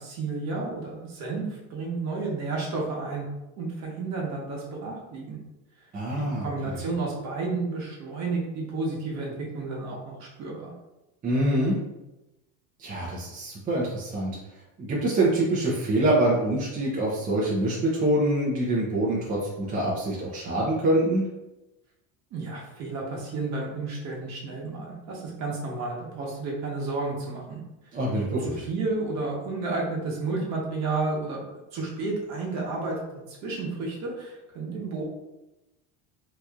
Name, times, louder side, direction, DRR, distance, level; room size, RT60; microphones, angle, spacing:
voice 1, 0.0-3.2 3.6-5.4 6.1-10.7 22.3-27.6 28.4-31.4 31.7-33.0 33.3-35.0, right 3 dB, 50° right, -2 dB, 1.2 m, -31 dB
voice 2, 5.9-6.5 11.2-11.8 12.8-14.4 14.8-21.2 27.9-28.5, right 1 dB, 25° right, -5 dB, 0.6 m, -25 dB
2.9 x 2.5 x 3.4 m, 0.97 s
cardioid pair, 140°, 35 cm